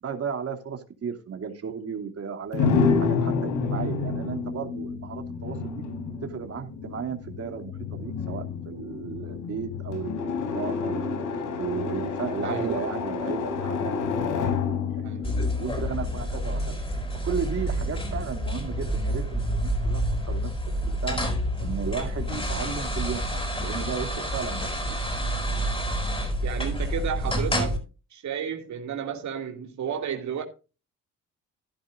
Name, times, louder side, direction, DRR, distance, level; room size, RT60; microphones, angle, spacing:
voice 1, 0.0-2.7 3.0-5.8 6.2-13.9 14.2-16.8 17.2-20.0 20.3-20.5 20.8-21.2 21.6-25.0, right 6 dB, 55° right, 2.7 m, -35 dB
sound 1, 2.5-16.4, left 5 dB, 75° left, 3.9 m, -29 dB
voice 2, 12.4-12.7 15.0-15.3 26.4-27.8 28.1-30.4, right 8 dB, 70° right, 2.7 m, -32 dB
sound 2, 15.2-27.8, equal, 20° left, 6.9 m, -28 dB
15.0 x 11.5 x 2.5 m
cardioid pair, 90°, 30 cm